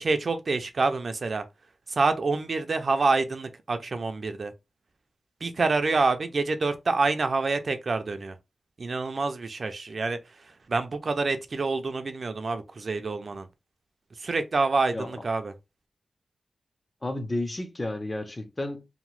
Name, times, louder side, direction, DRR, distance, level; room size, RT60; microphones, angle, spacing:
voice 1, 0.0-1.4 1.9-4.5 5.4-8.4 8.8-10.2 10.7-13.5 14.2-15.5, right 3 dB, 45° right, 0.3 m, -27 dB
voice 2, 17.0-18.9, left 1 dB, 20° left, 0.4 m, -32 dB
2.8 x 2.0 x 3.0 m
wide cardioid pair, 160°, 0 cm